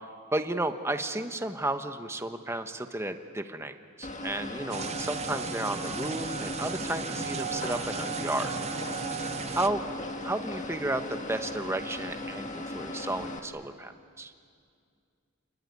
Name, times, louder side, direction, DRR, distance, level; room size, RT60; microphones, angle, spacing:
voice 1, 0.3-8.5 9.5-9.8 10.2-14.3, right 2 dB, 10° right, 8 dB, 1.1 m, -33 dB
sound 1, 4.0-13.4, left 2 dB, 35° left, 1.8 m, -37 dB
sound 2, 4.7-9.7, right 6 dB, 30° right, 0.6 m, -36 dB
29.5 x 21.0 x 9.6 m, 2.3 s
head